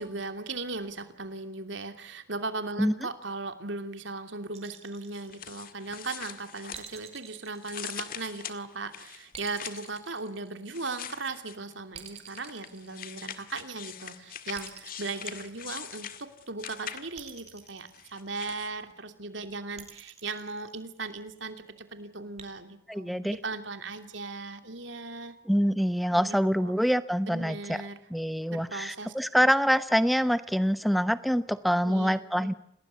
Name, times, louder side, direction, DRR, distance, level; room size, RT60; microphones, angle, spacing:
voice 1, 0.0-25.4 26.1-26.7 27.3-28.0 28.5-29.1 31.8-32.5, right 3 dB, 75° right, 8 dB, 2.8 m, -38 dB
sound 1, 4.5-6.0 6.7-8.6 9.3-11.1 11.9-13.7 14.5-16.2 17.2-18.7 19.8-21.3 22.4-22.5, right 7 dB, 35° right, 4.4 m, -48 dB
sound 2, 5.1-7.2 7.6-10.0 10.7-11.7 12.3-17.3 17.9-18.7, left 9 dB, 45° left, 1.9 m, -42 dB
voice 2, 22.9-23.4 25.5-27.8 28.1-32.5, equal, ahead, 13 dB, 0.9 m, -25 dB
28.5 x 19.5 x 8.5 m, 0.75 s
head